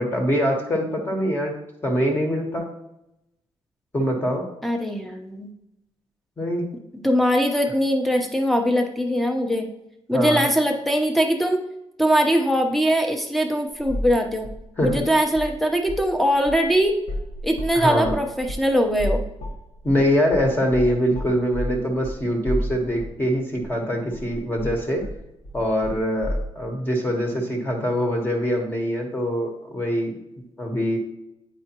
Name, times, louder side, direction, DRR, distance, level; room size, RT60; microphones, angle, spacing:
voice 1, 0.0-1.5 1.8-2.6 3.9-4.5 6.4-6.7 10.1-10.4 14.8-15.0 17.7-18.2 19.8-25.0 25.5-30.1 30.6-31.0, equal, 20° left, 0 dB, 1.1 m, -23 dB
voice 2, 4.6-5.5 7.0-9.7 10.1-11.6 12.0-14.5 14.8-17.0 17.4-19.2, equal, ahead, 4 dB, 0.8 m, -21 dB
sound 1, 13.8-14.2 14.4-15.6 15.8-16.1 16.5-23.2 23.6-23.7 24.1-26.5, left 1 dB, 90° left, 1.2 m, -31 dB
8.9 x 5.0 x 2.9 m, 0.86 s
wide cardioid pair, 155°, 11 cm